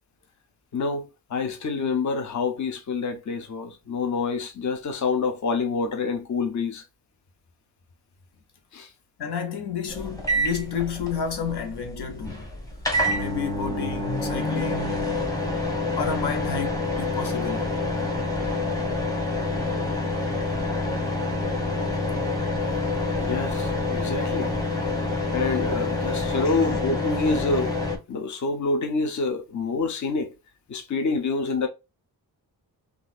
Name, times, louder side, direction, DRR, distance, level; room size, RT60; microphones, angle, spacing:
voice 1, 0.7-6.8 8.7-8.9 23.2-24.5 25.3-27.8 28.1-30.3 30.7-31.7, left 4 dB, 50° left, 0.7 m, -27 dB
voice 2, 9.2-12.5 13.1-15.2 15.9-17.8 26.4-26.7, left 6 dB, 85° left, 0.9 m, -31 dB
sound 1, 9.9-28.0, left 2 dB, 10° left, 0.9 m, -27 dB
3.8 x 2.5 x 2.4 m
wide cardioid pair, 135°, 39 cm